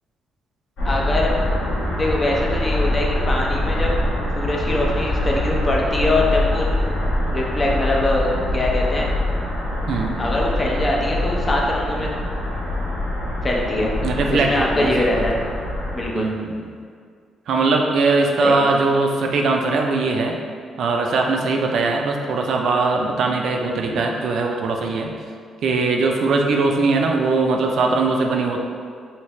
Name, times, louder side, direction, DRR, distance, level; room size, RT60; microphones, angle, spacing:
sound 1, 0.8-16.1, left 1 dB, 85° left, 1.0 m, -24 dB
voice 1, 0.9-1.4 1.9-3.9 4.4-6.7 7.3-8.3 8.5-9.1 10.2-12.1 13.4-13.9 14.3-15.4 15.9-16.3 18.4-18.6, left 1 dB, 30° left, -2 dB, 0.6 m, -22 dB
voice 2, 14.0-15.2 16.1-16.6 17.5-20.3 20.8-25.1 25.6-28.6, right 3 dB, 70° right, 2 dB, 0.3 m, -20 dB
3.1 x 2.8 x 3.1 m, 2.1 s
cardioid pair, 90°, 0 cm